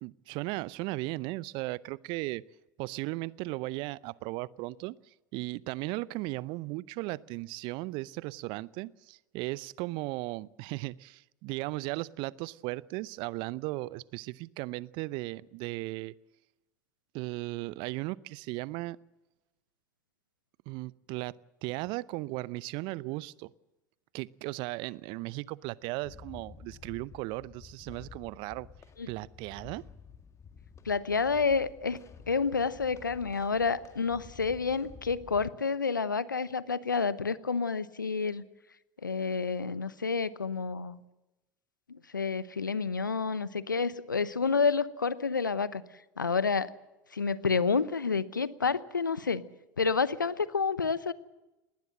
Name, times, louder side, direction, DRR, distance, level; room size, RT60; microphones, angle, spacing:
voice 1, 0.0-2.4 2.8-5.0 5.3-16.1 17.1-19.0 20.7-21.4 21.6-23.5 24.1-28.7 29.1-29.8, right 21 dB, 55° right, 22 dB, 0.6 m, -36 dB
sound 1, 26.0-35.5, left 6 dB, 30° left, 1.9 m, -51 dB
voice 2, 30.8-32.0 32.3-38.4 39.0-41.0 41.9-45.8 46.2-46.7 47.1-49.4 49.8-51.1, left 5 dB, 90° left, 17 dB, 0.9 m, -29 dB
20.0 x 19.0 x 7.7 m, 1.0 s
figure-of-eight pair, 75°, 10 cm